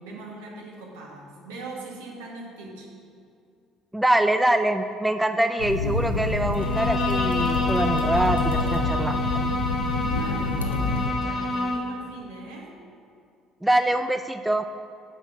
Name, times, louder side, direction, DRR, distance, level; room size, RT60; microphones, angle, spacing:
voice 1, 0.0-2.9 10.1-12.7, right 2 dB, 70° right, -2 dB, 1.3 m, -40 dB
voice 2, 3.9-9.5 13.6-14.6, right 1 dB, 5° right, 8 dB, 0.3 m, -24 dB
sound 1, 5.6-11.1, left 3 dB, 85° left, 0.5 m, -27 dB
Bowed string instrument, 6.5-12.0, left 2 dB, 40° left, 0.9 m, -28 dB
5.7 x 5.4 x 6.0 m, 2.4 s
figure-of-eight pair, 55°, 0 cm